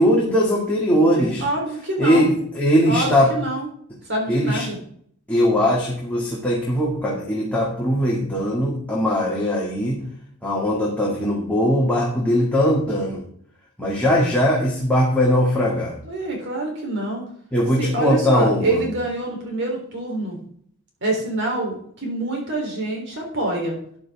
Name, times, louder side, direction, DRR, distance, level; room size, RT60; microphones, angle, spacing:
voice 1, 0.0-1.4 2.0-3.3 4.3-4.7 5.3-10.0 10.4-13.2 13.8-15.9 17.5-18.8, equal, 5° left, -5 dB, 2.3 m, -20 dB
voice 2, 1.0-2.3 2.9-3.7 4.1-4.8 16.0-17.3 17.8-20.4 21.0-23.8, right 2 dB, 55° right, 0 dB, 3.7 m, -26 dB
13.0 x 9.7 x 3.6 m, 0.62 s
head